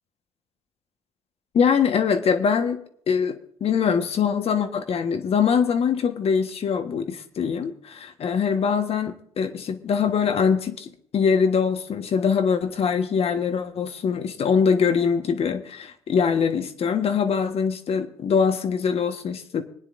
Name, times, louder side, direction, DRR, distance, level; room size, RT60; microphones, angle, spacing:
voice 1, 1.5-2.8 3.1-19.6, left 6 dB, 50° left, 8 dB, 1.4 m, -23 dB
26.5 x 9.7 x 2.6 m, 0.64 s
hypercardioid pair, 60°, 13 cm